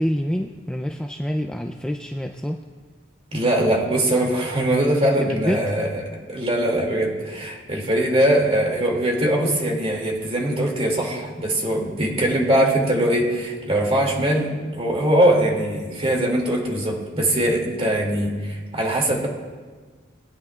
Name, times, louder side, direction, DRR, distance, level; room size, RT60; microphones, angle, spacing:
voice 1, 0.0-2.6 5.2-5.6, equal, 5° left, 4 dB, 0.3 m, -26 dB
voice 2, 3.3-6.0 6.3-19.3, right 1 dB, 30° right, -1 dB, 2.3 m, -21 dB
20.5 x 9.5 x 2.4 m, 1.4 s
head